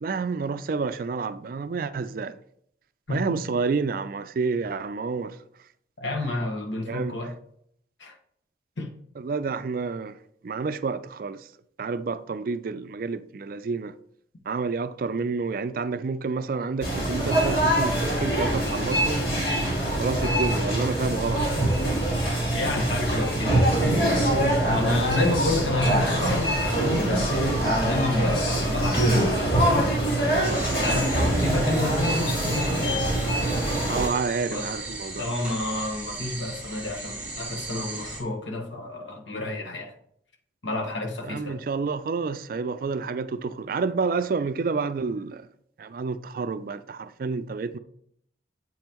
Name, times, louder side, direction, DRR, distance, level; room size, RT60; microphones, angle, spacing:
voice 1, 0.0-2.4 3.1-5.4 6.9-7.2 9.2-10.1 10.4-11.5 11.8-13.9 14.5-19.3 19.9-21.4 30.9-31.0 33.9-35.3 41.2-45.5 45.8-47.8, right 4 dB, 50° right, 0.3 m, -29 dB
voice 2, 3.1-3.4 6.0-7.3 8.0-8.1 8.8-8.9 22.5-24.3 24.7-29.9 30.4-33.0 34.5-34.7 35.2-39.9 40.6-41.6, left 2 dB, 90° left, 1.3 m, -30 dB
sound 1, 16.8-34.1, right 1 dB, 55° left, 2.7 m, -24 dB
sound 2, 30.4-38.2, right 2 dB, 10° right, 1.6 m, -37 dB
7.6 x 5.4 x 3.0 m
head